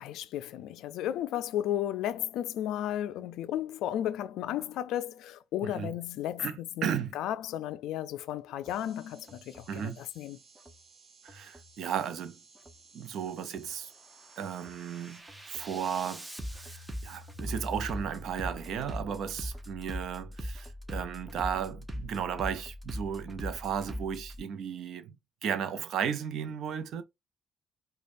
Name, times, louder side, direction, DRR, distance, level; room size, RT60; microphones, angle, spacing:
voice 1, 0.0-6.9 7.1-10.4, left 11 dB, 90° left, 0.3 m, -34 dB
voice 2, 5.6-5.9 6.4-7.2 9.7-10.0 11.2-12.4 12.9-13.9 14.4-15.2 15.5-16.3 16.5-25.2 25.4-27.0, right 8 dB, 75° right, 0.6 m, -34 dB
sound 1, 8.6-15.2, right 4 dB, 50° right, 1.0 m, -58 dB
Bass drum, 8.7-8.8 9.3-9.8 10.6-10.8 11.3-11.8 12.6-12.8 13.3-13.8 14.2-24.4, equal, 15° right, 0.9 m, -41 dB
5.0 x 2.3 x 2.5 m
cardioid pair, 90°, 0 cm